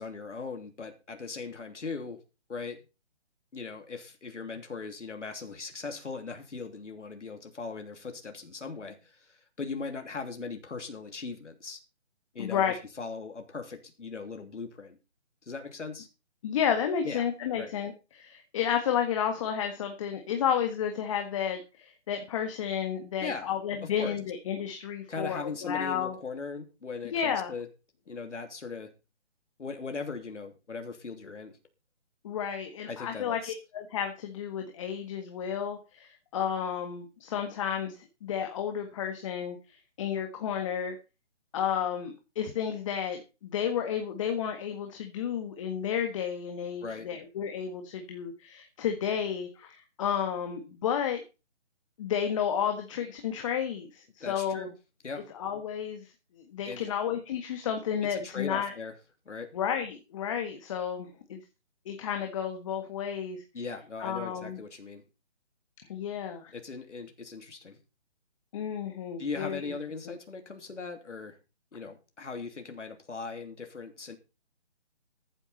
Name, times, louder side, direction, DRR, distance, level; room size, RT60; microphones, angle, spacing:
voice 1, 0.0-2.2 2.5-2.8 3.5-11.8 12.3-15.0 15.4-16.1 17.0-17.2 17.6-17.7 23.2-23.5 23.8-24.2 25.1-27.7 28.1-28.9 29.6-31.6 32.9-33.5 46.8-47.1 54.2-54.7 55.0-55.3 56.6-56.9 58.1-58.9 59.2-59.5 63.5-65.0 66.5-67.8 69.2-71.4 71.7-74.2, left 4 dB, 75° left, 5 dB, 3.2 m, -39 dB
voice 2, 12.4-12.7 16.4-26.1 27.1-27.5 32.2-37.9 38.2-40.9 41.5-51.2 52.0-54.7 55.3-58.7 59.5-61.4 61.8-63.4 64.0-64.6 65.9-66.5 68.5-69.6, left 8 dB, 25° left, 5 dB, 1.7 m, -32 dB
15.0 x 9.9 x 4.2 m, 0.30 s
figure-of-eight pair, 155°, 36 cm